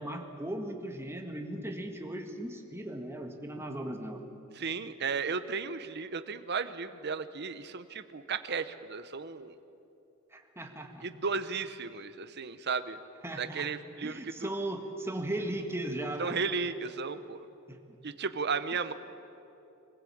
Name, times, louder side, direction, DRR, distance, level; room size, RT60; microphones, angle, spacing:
voice 1, 0.0-4.2 10.3-11.0 13.2-13.7 14.0-16.4 17.7-17.8, right 1 dB, 10° right, 4 dB, 1.7 m, -37 dB
voice 2, 4.6-9.6 11.0-13.0 13.4-14.5 16.2-17.4 18.0-18.9, right 5 dB, 50° right, 11 dB, 0.9 m, -34 dB
24.5 x 15.5 x 8.7 m, 2.8 s
head